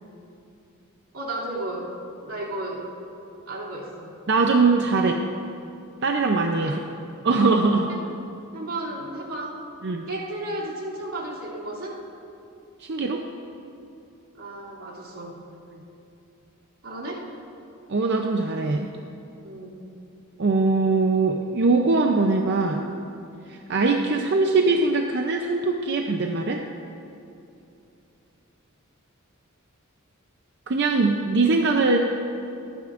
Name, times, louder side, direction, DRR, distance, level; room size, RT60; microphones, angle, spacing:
voice 1, 1.1-1.9 2.2-2.9 3.5-4.1 5.0-5.1 6.6-6.8 7.8-8.0 8.5-9.6 10.1-12.0 14.3-15.4 16.8-17.2 19.4-19.8, right 1 dB, 85° right, -6 dB, 2.7 m, -33 dB
voice 2, 4.3-5.1 6.0-6.8 7.2-7.9 9.8-10.0 12.8-13.2 17.9-18.9 20.4-22.8 23.5-26.6 30.7-32.0, right 3 dB, 55° right, 2 dB, 0.6 m, -21 dB
24.5 x 9.3 x 2.5 m, 2.7 s
head